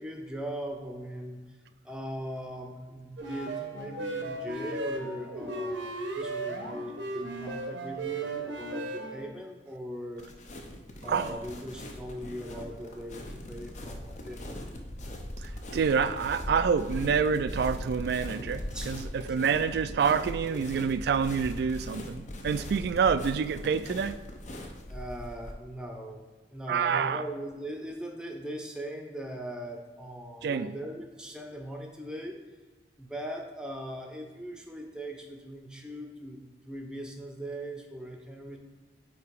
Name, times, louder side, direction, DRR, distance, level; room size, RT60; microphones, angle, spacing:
voice 1, 0.0-1.6 1.8-10.3 11.0-14.7 18.7-18.9 19.4-19.5 20.5-20.6 24.9-26.2 26.5-32.4 33.0-36.4 36.7-38.6, equal, 5° right, 2 dB, 0.7 m, -40 dB
sound 1, 3.2-9.3, right 2 dB, 90° right, 0.9 m, -36 dB
sound 2, 10.2-25.5, left 1 dB, 40° left, 0.7 m, -40 dB
voice 2, 11.0-11.4 15.4-24.2 26.7-27.2 30.4-30.8, right 6 dB, 60° right, 13 dB, 0.3 m, -27 dB
8.3 x 2.9 x 4.7 m, 1.3 s
head